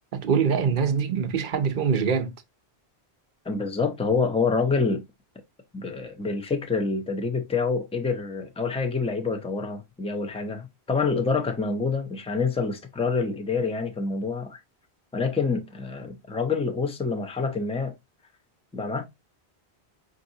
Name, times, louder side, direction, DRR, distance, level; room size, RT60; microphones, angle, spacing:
voice 1, 0.1-2.3, right 6 dB, 55° right, 0.8 m, -24 dB
voice 2, 3.4-5.0 5.7-14.6 15.1-17.9 18.7-19.0, left 4 dB, 5° left, 0.6 m, -27 dB
5.3 x 2.7 x 2.7 m
omnidirectional pair, 1.1 m